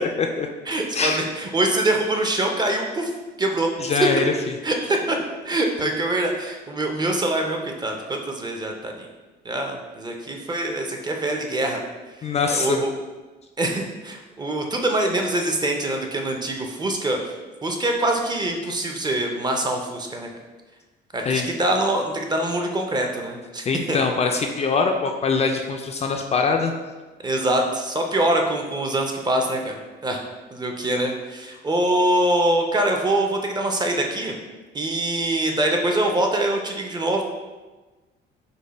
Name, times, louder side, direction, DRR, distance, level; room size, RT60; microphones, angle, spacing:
voice 1, 0.0-0.5 1.0-1.2 3.8-4.3 12.2-12.9 21.3-21.5 23.7-26.7, left 4 dB, 35° left, 3 dB, 0.4 m, -23 dB
voice 2, 0.7-3.1 3.4-3.7 4.6-5.2 5.4-9.1 9.4-11.8 12.5-12.9 13.6-17.3 17.6-20.3 21.1-24.0 27.2-30.2 30.5-34.4 34.7-37.2, right 1 dB, 20° right, 2 dB, 0.5 m, -24 dB
5.2 x 2.2 x 4.0 m, 1.2 s
cardioid pair, 115°, 20 cm